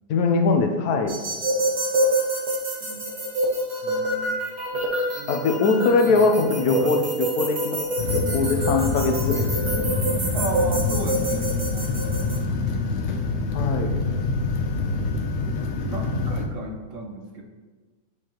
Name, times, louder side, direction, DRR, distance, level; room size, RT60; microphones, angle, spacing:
voice 1, 0.1-1.1 5.3-7.0 7.4-7.8 8.1-9.9 13.5-14.0, left 4 dB, 75° left, 4 dB, 1.1 m, -22 dB
sound 1, 1.1-12.4, right 1 dB, 30° right, 1.1 m, -27 dB
voice 2, 2.8-3.2 3.8-4.4 4.7-5.6 6.0-6.3 6.7-7.0 10.3-12.9 13.4-13.9 14.4-14.8 15.6-17.4, right 2 dB, 60° right, 2 dB, 0.9 m, -36 dB
sound 2, 8.0-16.5, left 3 dB, 55° left, 0.8 m, -26 dB
8.0 x 4.6 x 2.9 m, 1.3 s
omnidirectional pair, 1.7 m